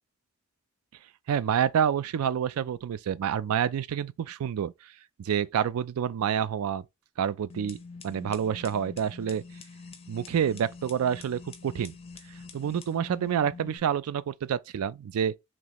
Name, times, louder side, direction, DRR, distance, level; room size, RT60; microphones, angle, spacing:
voice 1, 1.3-4.7 5.2-6.8 7.2-7.8 8.0-9.4 10.1-12.0 12.5-15.3, right 8 dB, 85° right, 0.3 m, -28 dB
sound 1, 7.5-13.8, left 4 dB, 25° left, 0.5 m, -46 dB
3.1 x 3.0 x 3.9 m
head